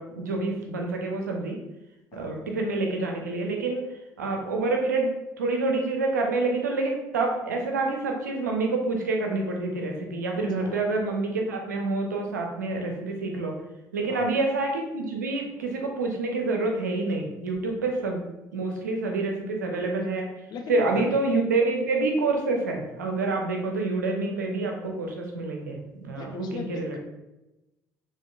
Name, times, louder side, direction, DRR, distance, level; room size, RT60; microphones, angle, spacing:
voice 1, 0.0-1.6 2.1-3.9 4.2-13.5 13.9-18.2 18.5-20.3 20.7-27.0, right 3 dB, 80° right, 2 dB, 0.5 m, -27 dB
voice 2, 20.5-21.1 26.1-27.0, left 4 dB, 50° left, 4 dB, 0.6 m, -39 dB
5.1 x 2.5 x 2.4 m, 0.97 s
figure-of-eight pair, 50°, 9 cm